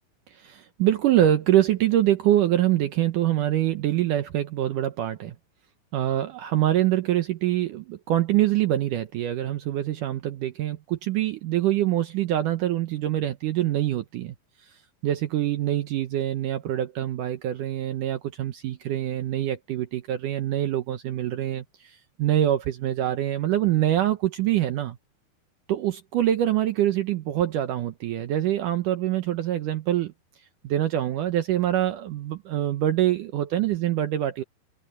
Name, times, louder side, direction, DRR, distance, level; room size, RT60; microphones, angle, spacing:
voice 1, 0.4-5.4 5.9-14.4 15.0-25.0 25.7-30.1 30.6-34.4, right 12 dB, 75° right, 1.9 m, -25 dB
open air
omnidirectional pair, 4.9 m